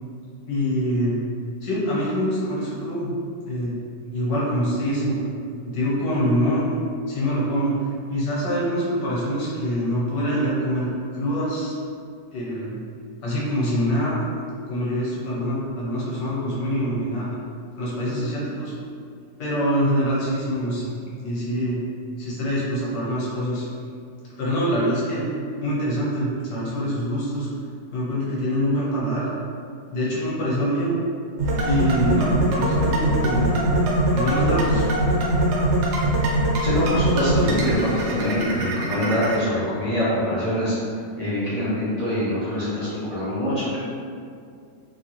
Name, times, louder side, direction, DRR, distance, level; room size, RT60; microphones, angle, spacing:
voice 1, 0.4-1.2 1.6-3.1 3.5-3.7 4.0-5.3 5.6-6.7 7.1-11.7 12.3-12.7 13.2-14.2 14.7-17.3 17.8-18.7 19.4-20.9 21.2-21.8 22.2-23.6 24.4-25.3 25.6-27.5 27.9-29.3 29.9-31.0 31.6-33.6 34.1-34.9, equal, 65° left, -7 dB, 1.3 m, -25 dB
sound 1, 31.4-39.4, right 1 dB, 75° right, 1.1 m, -22 dB
voice 2, 36.6-40.7 41.2-43.8, equal, 45° right, -11 dB, 0.5 m, -24 dB
3.1 x 2.3 x 2.8 m, 2.3 s
omnidirectional pair, 1.9 m